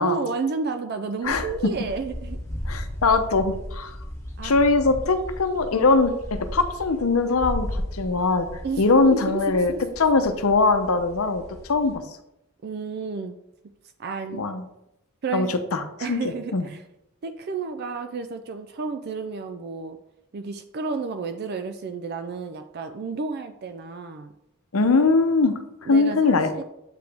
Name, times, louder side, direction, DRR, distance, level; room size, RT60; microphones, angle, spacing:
voice 1, 0.0-2.4 4.4-4.5 8.6-8.8 9.1-9.8 12.6-13.3 14.0-14.4 15.2-15.5 16.0-16.8 17.2-20.0 20.3-24.3 25.9-26.6, right 4 dB, 50° right, 8 dB, 0.4 m, -31 dB
sound 1, 1.2-12.0, equal, 15° left, 1.4 m, -36 dB
voice 2, 2.7-4.0 4.4-6.1 6.5-11.4 11.7-12.0 14.3-14.6 15.3-16.7 24.7-26.6, left 3 dB, 75° left, 8 dB, 0.7 m, -21 dB
7.6 x 4.9 x 3.5 m, 0.84 s
head